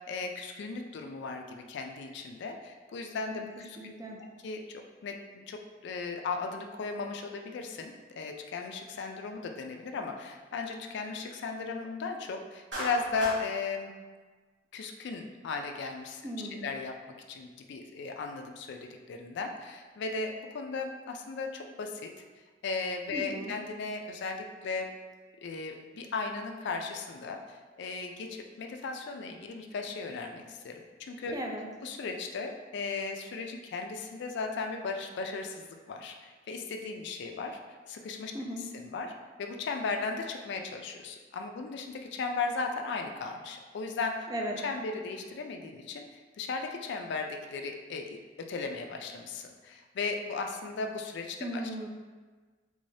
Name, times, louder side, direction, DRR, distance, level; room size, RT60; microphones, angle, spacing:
voice 1, 0.0-3.9 4.2-4.6 5.0-13.9 14.7-16.2 16.5-16.9 17.3-22.1 22.6-24.9 25.4-31.4 31.8-37.6 37.9-38.3 38.7-39.1 39.4-44.3 44.6-51.6, left 4 dB, 65° left, 4 dB, 0.4 m, -36 dB
voice 2, 3.8-4.2 16.2-16.7 23.1-23.6 31.3-31.7 38.3-38.7 44.3-44.6 51.4-51.9, right 1 dB, 20° right, 0 dB, 0.4 m, -37 dB
Clapping, 12.7-13.4, equal, 80° right, 1.2 m, -36 dB
3.7 x 3.2 x 2.6 m, 1.4 s
head